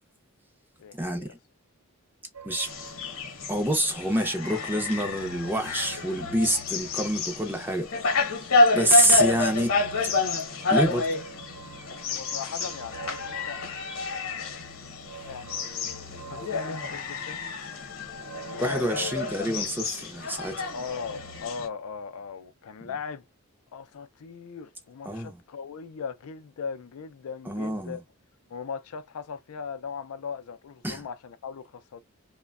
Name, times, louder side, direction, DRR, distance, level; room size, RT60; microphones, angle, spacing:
voice 1, 0.8-1.3 12.0-13.6 15.2-17.5 18.2-19.1 20.7-23.2 23.7-28.0 28.5-32.0, left 6 dB, 80° left, 0.4 m, -39 dB
sound 1, 2.3-4.0 4.3-7.8 8.7-20.1 20.4-21.4, right 5 dB, 85° right, 0.6 m, -47 dB
sound 2, 2.6-21.7, left 3 dB, 65° left, 0.9 m, -29 dB
voice 2, 3.5-8.1 8.7-9.8 10.7-11.1 18.6-20.7 22.8-22.9 25.1-25.4 27.5-28.0 30.8-31.0, right 1 dB, 10° right, 0.5 m, -27 dB
3.0 x 2.2 x 2.3 m
head